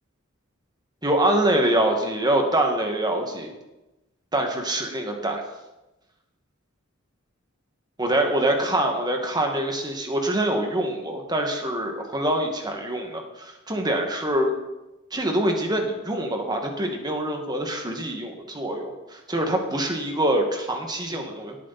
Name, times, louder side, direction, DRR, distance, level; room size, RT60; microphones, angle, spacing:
voice 1, 1.0-3.5 4.3-5.4 8.0-14.5 15.1-21.6, right 1 dB, 20° right, 3 dB, 1.9 m, -25 dB
18.0 x 8.4 x 4.2 m, 1.0 s
head